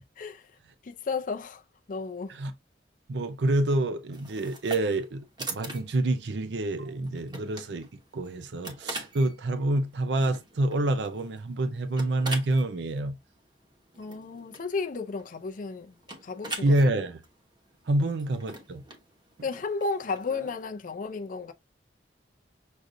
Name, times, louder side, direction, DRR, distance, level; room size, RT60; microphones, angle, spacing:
voice 1, 0.2-0.5 0.8-1.6 1.9-2.4 14.0-16.0 16.2-16.8 19.4-21.5, left 4 dB, 45° left, 0.5 m, -33 dB
voice 2, 3.1-7.9 8.1-13.2 16.6-17.2 17.9-18.8, right 1 dB, 70° right, 0.5 m, -27 dB
sound 1, 4.1-20.6, right 2 dB, 25° right, 1.0 m, -43 dB
6.3 x 2.6 x 2.6 m
head